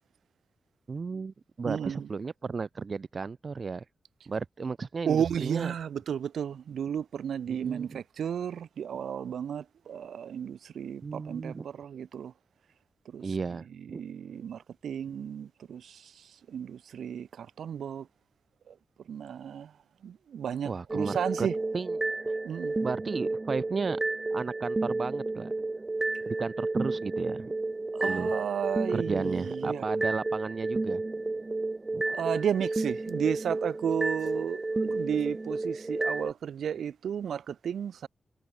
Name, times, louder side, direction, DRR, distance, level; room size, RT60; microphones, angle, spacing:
voice 1, 0.9-3.8 4.3-5.7 7.5-8.0 11.0-11.7 13.2-14.0 20.6-21.5 21.7-22.0 22.8-24.0 24.3-25.5 26.3-27.5 28.0-28.3 28.9-31.0 31.9-32.2, right 4 dB, 50° right, 1.7 m, -34 dB
voice 2, 1.7-2.1 5.1-12.3 13.1-13.2 13.9-16.1 16.5-18.1 18.7-18.8 19.1-19.7 20.0-21.5 22.4-22.8 27.9-29.8 32.1-38.1, right 8 dB, 90° right, 2.4 m, -33 dB
sound 1, 20.9-36.3, right 2 dB, 30° right, 3.0 m, -31 dB
cardioid pair, 80°, 0 cm